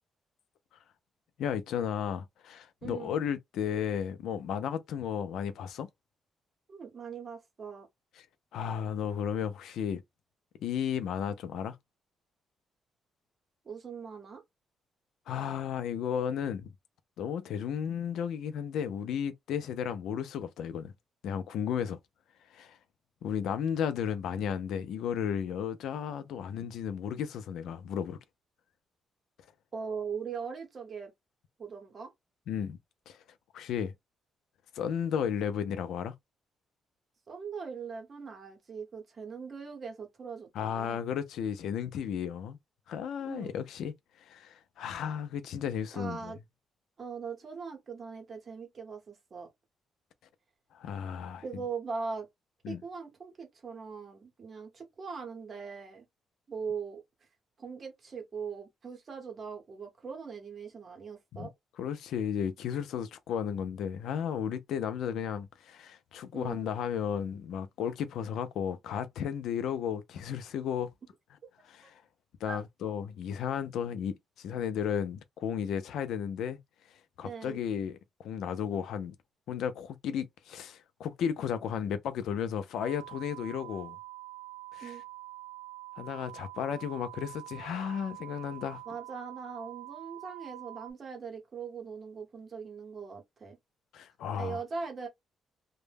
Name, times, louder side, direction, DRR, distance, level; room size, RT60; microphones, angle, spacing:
voice 1, 1.4-5.9 8.2-8.3 8.5-10.0 10.6-11.8 15.3-16.7 17.2-20.9 21.2-22.0 22.5-22.8 23.2-28.2 32.5-32.8 33.1-33.2 33.5-33.9 34.7-36.1 40.5-42.6 42.9-46.3 50.7-51.4 52.6-52.8 61.4-61.5 61.8-70.9 71.7-72.0 72.4-76.6 76.9-79.1 79.5-84.0 84.7-85.0 86.0-88.8 93.9-94.6, left 8 dB, 75° left, 0.4 m, -34 dB
voice 2, 2.8-3.1 6.7-7.9 13.6-14.4 29.7-31.1 31.6-32.1 37.3-41.0 43.2-43.5 45.9-46.4 47.0-49.5 51.4-52.3 52.7-56.0 56.5-57.0 57.6-61.5 66.3-66.7 72.4-72.6 77.2-77.6 84.8-85.0 88.9-93.6 94.3-95.1, right 5 dB, 30° right, 0.8 m, -40 dB
sound 1, 82.8-90.9, right 17 dB, 60° right, 0.7 m, -46 dB
2.1 x 2.0 x 3.2 m
cardioid pair, 175°, 0 cm